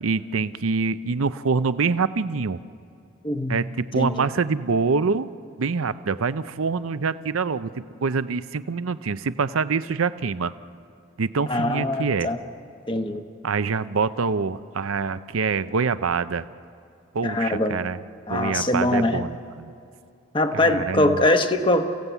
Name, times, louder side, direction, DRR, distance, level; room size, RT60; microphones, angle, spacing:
voice 1, 0.0-2.6 3.5-5.3 5.6-10.5 11.2-12.3 13.4-16.5 17.1-18.0 18.3-19.7 20.5-21.2, right 4 dB, 85° right, 13 dB, 0.6 m, -25 dB
voice 2, 3.2-3.6 4.0-4.1 11.5-12.4 12.9-13.2 17.2-17.8 18.3-19.2 20.3-21.9, left 1 dB, 25° left, 7 dB, 1.1 m, -22 dB
29.5 x 16.5 x 8.2 m, 2.5 s
head